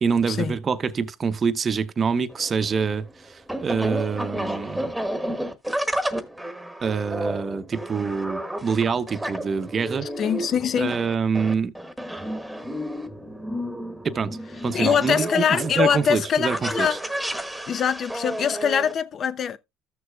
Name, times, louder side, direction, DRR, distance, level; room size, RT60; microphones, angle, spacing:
voice 1, 0.0-4.9 6.8-10.1 10.8-11.7 14.0-14.4 14.6-17.0, right 5 dB, 35° right, 0.8 m, -25 dB
sound 1, 2.3-18.9, right 1 dB, 5° right, 1.5 m, -32 dB
voice 2, 10.2-11.0 14.7-17.0 17.7-19.6, left 8 dB, 45° left, 0.7 m, -23 dB
14.5 x 6.5 x 2.3 m
supercardioid pair, 95°, 0 cm